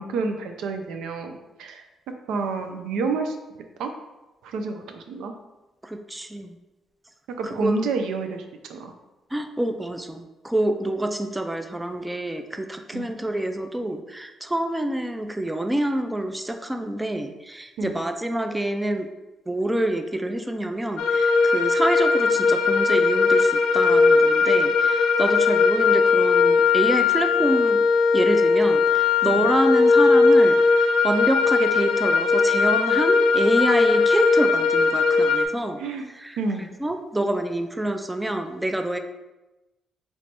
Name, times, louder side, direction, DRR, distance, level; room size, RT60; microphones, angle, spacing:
voice 1, 0.0-1.8 2.3-3.4 3.8-3.9 4.4-5.3 7.4-8.9 12.9-13.1 17.8-18.0 29.3-29.5 35.8-36.1 36.4-36.7, right 4 dB, 85° right, 5 dB, 0.4 m, -29 dB
voice 2, 5.8-6.6 7.5-7.8 9.3-19.1 19.5-27.8 28.1-35.8 36.2-36.4 36.8-39.0, right 1 dB, 10° right, 6 dB, 0.4 m, -27 dB
sound 1, 21.0-35.5, left 4 dB, 90° left, 0.5 m, -19 dB
3.2 x 3.1 x 4.2 m, 1.0 s
cardioid pair, 90°, 0 cm